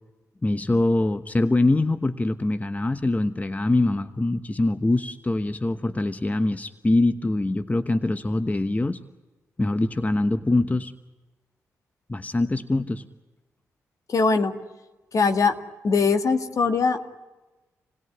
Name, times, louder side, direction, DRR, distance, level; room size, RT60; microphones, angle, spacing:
voice 1, 0.4-9.0 9.6-10.9 12.1-13.0, left 2 dB, 25° left, 11 dB, 1.1 m, -23 dB
voice 2, 14.1-14.5 15.1-15.5 15.8-17.1, left 4 dB, 60° left, 7 dB, 2.0 m, -21 dB
28.0 x 17.5 x 9.6 m, 1.2 s
supercardioid pair, 50°, 6 cm